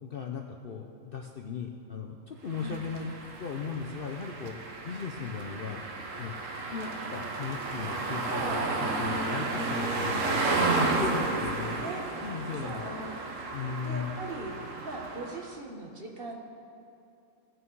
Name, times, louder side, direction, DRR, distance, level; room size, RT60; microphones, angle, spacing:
voice 1, 0.0-3.1 3.4-4.5 4.8-5.8 6.2-6.3 6.7-10.5 10.8-11.8 12.2-12.8 13.5-14.1, left 6 dB, 55° left, 2 dB, 0.7 m, -37 dB
sound 1, 2.5-15.5, right 3 dB, 65° right, 1.3 m, -32 dB
voice 2, 8.3-8.7 11.1-12.0 12.6-13.2 13.8-14.5 14.8-16.4, right 2 dB, 45° right, 1 dB, 1.3 m, -39 dB
17.5 x 6.3 x 4.7 m, 2.7 s
omnidirectional pair, 1.5 m